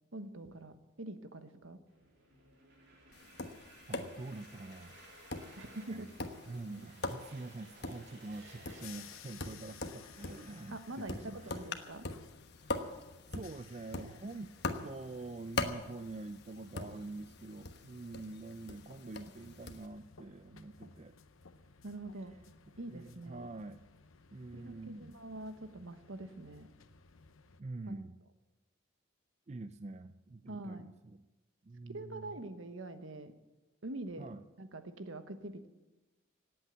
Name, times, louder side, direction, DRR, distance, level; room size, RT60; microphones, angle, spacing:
voice 1, 0.1-1.8 5.6-6.1 10.7-12.1 19.1-19.2 21.8-22.3 22.8-23.5 24.5-26.7 27.9-28.0 30.5-30.8 31.9-33.3 33.8-34.3 34.6-35.7, right 2 dB, 75° right, 9 dB, 1.2 m, -44 dB
sound 1, 1.9-11.6, right 2 dB, 50° right, 3.8 m, -59 dB
Tap, 3.1-19.9, left 3 dB, 50° left, 1.2 m, -43 dB
voice 2, 3.9-5.0 5.9-6.1 6.4-11.7 12.6-14.5 14.8-21.2 22.2-22.4 22.9-23.8 24.3-25.2 27.6-28.1 29.5-31.3 31.6-32.4 34.2-34.4, right 2 dB, 30° right, 11 dB, 0.4 m, -46 dB
sound 2, 8.3-27.6, left 5 dB, 85° left, 0.9 m, -58 dB
18.0 x 8.5 x 8.1 m, 1.1 s
head